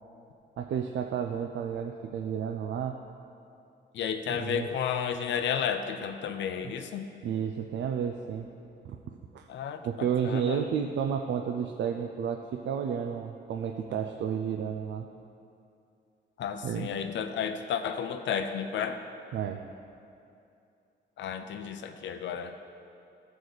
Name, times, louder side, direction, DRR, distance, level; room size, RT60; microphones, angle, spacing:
voice 1, 0.6-3.0 4.4-4.7 7.2-8.5 8.8-9.5 9.8-15.1 16.6-16.9 19.3-19.6, right 7 dB, 80° right, 4 dB, 0.4 m, -31 dB
voice 2, 3.9-7.1 9.5-10.6 16.4-19.0 21.2-22.6, left 7 dB, 90° left, 8 dB, 0.6 m, -32 dB
14.0 x 4.9 x 4.0 m, 2.6 s
wide cardioid pair, 170°, 19 cm